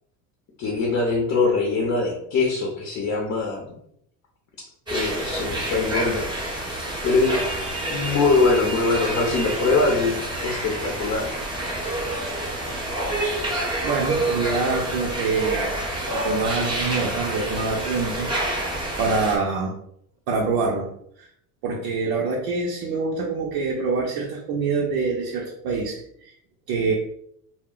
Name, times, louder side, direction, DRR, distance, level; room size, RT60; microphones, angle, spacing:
voice 1, 0.6-3.7 4.6-4.7 4.9-6.3 7.0-7.4 7.9-10.2 10.4-11.3, left 3 dB, 40° left, 0 dB, 0.7 m, -22 dB
sound 1, 4.9-19.4, right 1 dB, 10° right, 0.8 m, -28 dB
voice 2, 13.8-15.8 16.1-18.4 19.0-19.8 20.3-20.9 21.2-21.3 21.6-26.3 26.7-26.9, right 4 dB, 65° right, -2 dB, 0.6 m, -25 dB
2.1 x 2.1 x 3.6 m, 0.72 s
supercardioid pair, 100°, 42 cm